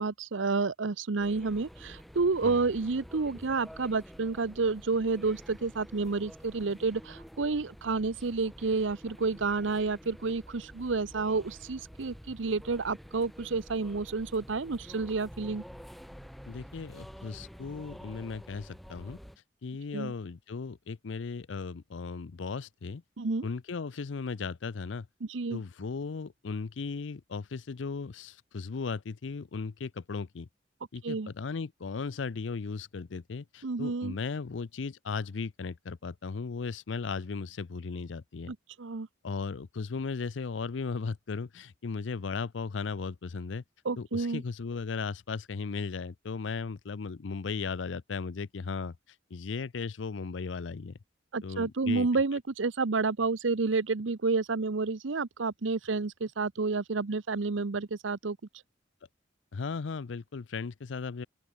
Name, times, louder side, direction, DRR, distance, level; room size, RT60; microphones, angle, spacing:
voice 1, 0.0-15.6 19.9-20.1 23.2-23.5 25.3-25.6 31.0-31.3 33.6-34.2 38.5-39.1 43.8-44.4 51.3-58.4, right 4 dB, 80° right, 0.8 m, -30 dB
sound 1, 1.2-19.4, equal, ahead, 1.1 m, -49 dB
voice 2, 16.5-19.2 19.6-23.0 23.4-25.1 25.5-30.5 30.9-38.5 39.2-43.6 44.0-48.9 49.3-51.0 51.4-52.2 59.5-61.3, left 4 dB, 75° left, 0.5 m, -36 dB
open air
head